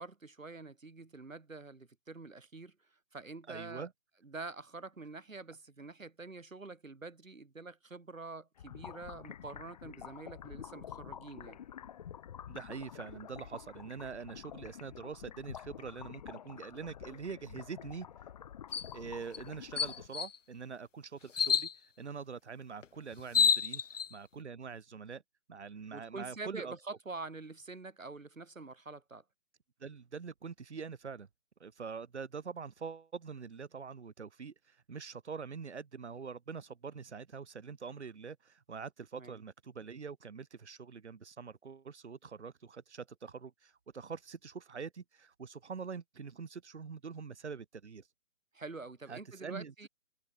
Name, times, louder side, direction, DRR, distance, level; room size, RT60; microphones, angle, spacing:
voice 1, 0.0-2.8 3.1-3.9 4.2-11.6 25.9-29.2 39.1-39.4 48.5-49.9, right 3 dB, 90° right, 7.7 m, -46 dB
voice 2, 3.5-3.9 12.5-18.1 18.9-23.8 24.1-25.2 25.5-26.7 29.8-31.3 31.6-48.1 49.1-49.9, right 5 dB, 60° right, 5.4 m, -44 dB
sound 1, 8.6-20.1, left 9 dB, 30° left, 2.3 m, -49 dB
sound 2, 18.7-18.9 19.3-19.4 19.8-20.3 21.3-21.7 22.8-22.9 23.2-24.1, left 7 dB, 70° left, 1.0 m, -28 dB
hypercardioid pair, 160°, 39 cm